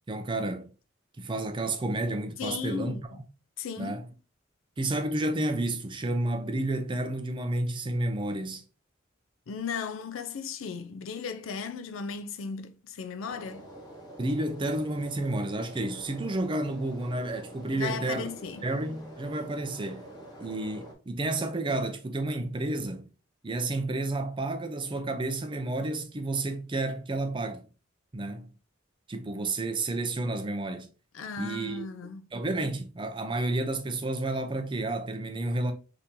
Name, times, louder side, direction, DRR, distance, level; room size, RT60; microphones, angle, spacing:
voice 1, 0.1-0.7 1.2-3.0 3.8-4.1 4.8-8.6 14.2-18.3 18.6-20.1 20.4-23.1 23.4-27.6 28.1-28.5 29.1-30.9 31.4-31.9 32.3-35.7, right 2 dB, 25° right, 0.4 m, -31 dB
voice 2, 2.4-3.2 3.6-4.0 9.5-13.7 17.7-18.6 31.1-32.3, left 5 dB, 90° left, 0.4 m, -36 dB
sound 1, 13.3-20.9, right 1 dB, 20° left, 1.0 m, -47 dB
2.8 x 2.7 x 3.6 m
head